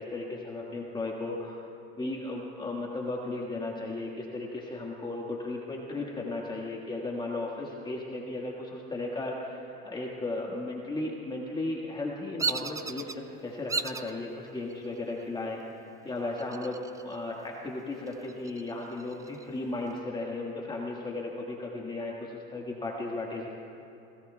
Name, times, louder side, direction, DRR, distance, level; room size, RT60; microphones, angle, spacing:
voice 1, 0.0-1.6 2.0-15.6 16.0-23.5, left 2 dB, 15° left, -2 dB, 1.6 m, -35 dB
Bird vocalization bird call bird song, 12.4-13.2 13.7-14.1 14.7-15.2 16.4-17.1 17.5-17.6 18.1-19.5, right 4 dB, 10° right, 0.4 m, -34 dB
29.0 x 18.0 x 2.3 m, 2.9 s
supercardioid pair, 115°, 30 cm